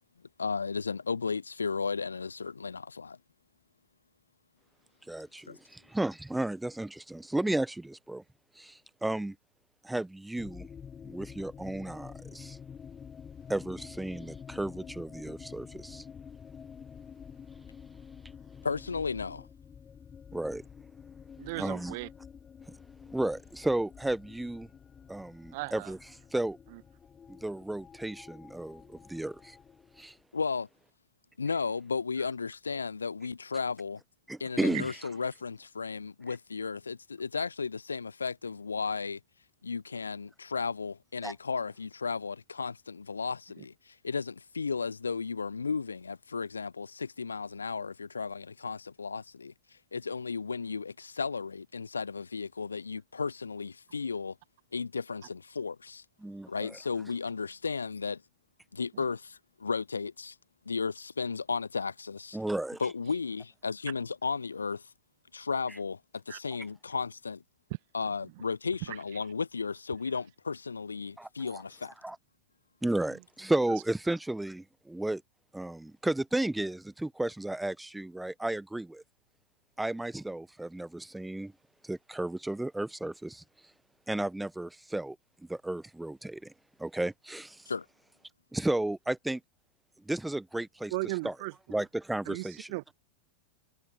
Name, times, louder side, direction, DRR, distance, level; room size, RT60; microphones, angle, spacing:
voice 1, 0.4-3.2 5.5-5.6 18.6-19.5 30.3-30.7 31.4-34.0 34.4-39.2 39.6-49.5 49.9-54.4 54.7-56.0 56.5-58.2 58.7-60.4 60.7-62.4 62.8-64.9 65.3-66.0 66.3-67.4 67.9-71.9 87.7-87.9, left 5 dB, 75° left, 0.7 m, -34 dB
voice 2, 5.1-8.2 8.6-9.3 9.8-10.7 11.0-12.6 13.5-16.0 20.3-20.6 21.6-21.9 23.1-24.7 25.1-26.0 26.3-26.6 27.3-29.6 30.0-30.1 34.3-34.9 41.2-41.3 56.2-56.5 62.3-62.8 71.2-71.6 72.0-72.2 72.8-75.2 75.5-79.0 79.8-81.5 81.9-83.4 84.1-85.2 85.5-86.5 86.8-87.6 88.5-89.4 90.1-90.9 91.2-91.3 91.7-92.7, right 1 dB, 5° right, 1.5 m, -33 dB
sound 1, 10.4-30.2, left 7 dB, 20° left, 4.3 m, -49 dB
voice 3, 21.4-22.1 25.5-25.9 26.7-26.8 34.7-34.8 43.6-43.7 58.9-59.1 66.3-66.4 68.9-69.0 73.1-73.2 90.9-91.5 92.3-92.9, right 24 dB, 50° right, 2.1 m, -37 dB
figure-of-eight pair, 90°, 0 cm